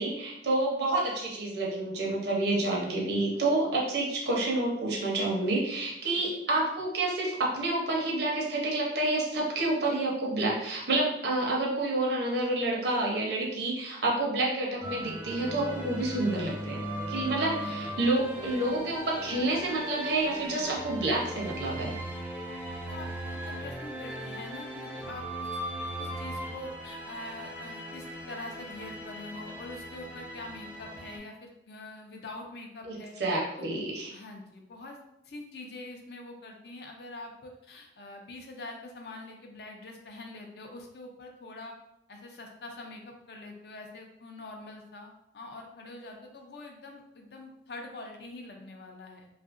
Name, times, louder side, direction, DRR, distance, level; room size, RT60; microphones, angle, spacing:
voice 1, 0.0-21.9 32.8-34.1, right 2 dB, 70° right, -2 dB, 0.7 m, -29 dB
sound 1, 14.8-31.2, right 1 dB, 10° right, 0.4 m, -38 dB
voice 2, 22.8-25.6 26.0-33.2 33.6-33.7 34.1-35.0 35.3-41.7 42.1-49.3, left 2 dB, 65° left, 2 dB, 0.5 m, -44 dB
2.7 x 2.4 x 2.4 m, 0.82 s
head